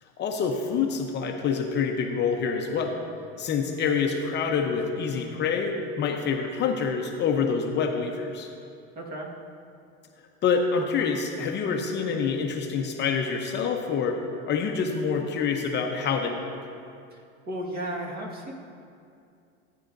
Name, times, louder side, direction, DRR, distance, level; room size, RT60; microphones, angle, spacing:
voice 1, 0.2-3.0 3.4-8.5 10.4-16.5, left 5 dB, 35° left, 3 dB, 0.8 m, -27 dB
voice 2, 8.9-9.3 17.1-17.2 17.5-18.5, right 1 dB, 30° right, -1 dB, 1.7 m, -34 dB
15.5 x 9.3 x 2.6 m, 2.5 s
supercardioid pair, 125°, 30 cm